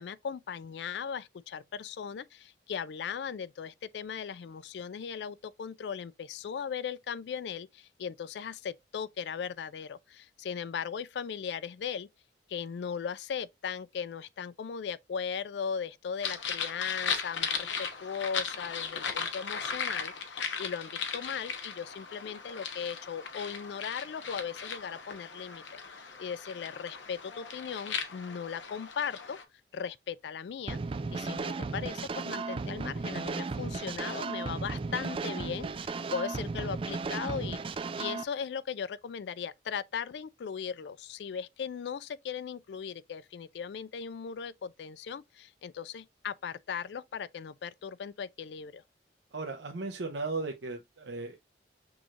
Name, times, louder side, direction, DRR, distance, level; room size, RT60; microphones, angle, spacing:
voice 1, 0.0-12.1 12.5-25.6 26.2-29.4 29.7-30.8 31.1-37.6 38.0-48.8, left 7 dB, 65° left, 0.3 m, -38 dB
sound 1, 16.2-29.4, left 6 dB, 85° left, 1.0 m, -37 dB
sound 2, 30.7-38.2, right 4 dB, 30° right, 0.3 m, -35 dB
voice 2, 49.3-51.4, right 3 dB, 70° right, 0.7 m, -36 dB
6.1 x 3.1 x 2.4 m
head